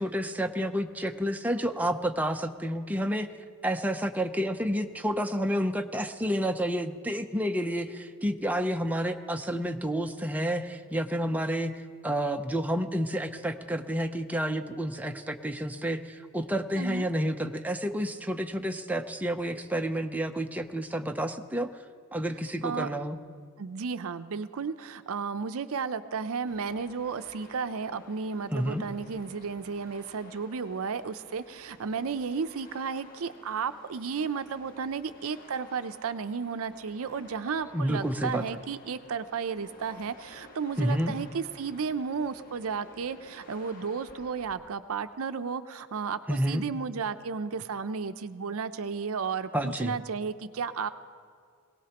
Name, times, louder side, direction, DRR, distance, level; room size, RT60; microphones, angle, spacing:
voice 1, 0.0-3.3 3.6-11.7 12.0-21.7 22.1-23.2 28.5-28.8 37.7-38.4 40.8-41.2 46.3-46.6 49.5-50.0, equal, 5° right, 5 dB, 0.6 m, -30 dB
voice 2, 23.6-50.9, right 5 dB, 70° right, 12 dB, 0.5 m, -33 dB
sound 1, 26.5-44.5, left 2 dB, 40° left, 1.5 m, -53 dB
21.5 x 17.5 x 2.9 m, 2.2 s
head